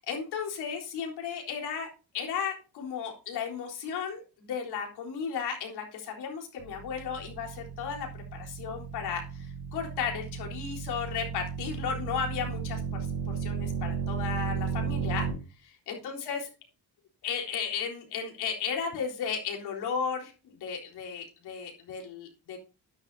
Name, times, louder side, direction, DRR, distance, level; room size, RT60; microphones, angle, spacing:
voice 1, 0.1-1.9 2.1-15.3 15.6-16.5 17.2-22.6, left 6 dB, 75° left, 1 dB, 3.9 m, -35 dB
sound 1, 6.6-15.3, right 6 dB, 55° right, 4.2 m, -34 dB
13.0 x 9.9 x 2.7 m, 0.33 s
supercardioid pair, 75°, 39 cm